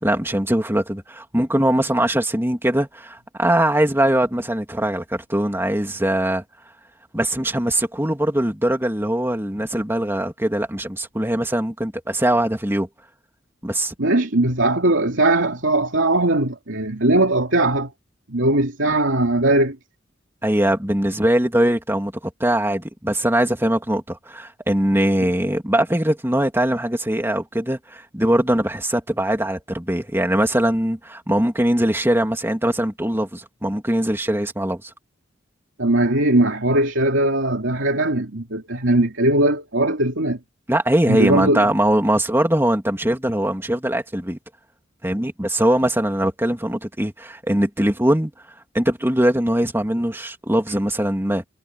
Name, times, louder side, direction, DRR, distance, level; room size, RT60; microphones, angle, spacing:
voice 1, 0.0-6.4 7.1-12.9 13.6-13.9 20.4-34.9 40.7-44.4 45.0-48.3 48.7-51.4, right 1 dB, 10° right, 2.8 m, -21 dB
voice 2, 14.0-17.9 18.3-19.8 35.8-40.4 41.1-41.7, right 1 dB, 90° right, 2.6 m, -19 dB
head